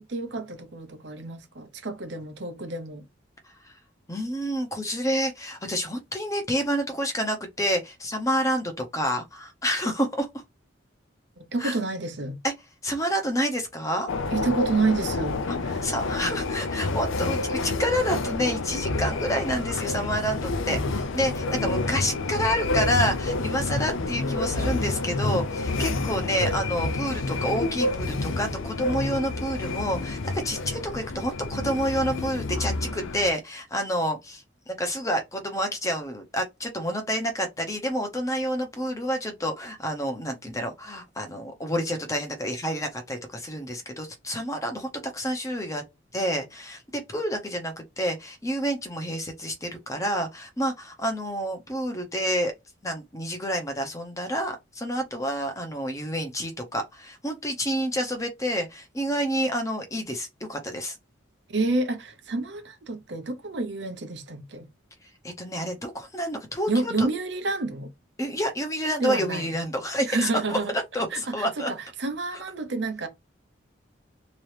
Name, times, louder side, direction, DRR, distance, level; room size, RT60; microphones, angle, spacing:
voice 1, 0.0-3.0 11.5-12.4 14.3-15.8 61.5-64.7 66.7-67.9 69.0-69.5 70.1-70.7 71.1-73.1, right 3 dB, 60° right, 0.8 m, -29 dB
voice 2, 4.1-10.3 11.6-11.8 12.4-12.5 12.8-14.1 15.5-15.6 15.8-45.8 46.1-52.5 52.8-61.0 65.2-67.1 68.2-70.6 70.9-71.7 72.3-72.4, equal, 15° left, 0.7 m, -29 dB
sound 1, 14.1-33.3, left 2 dB, 85° left, 0.6 m, -28 dB
3.7 x 3.0 x 3.2 m
head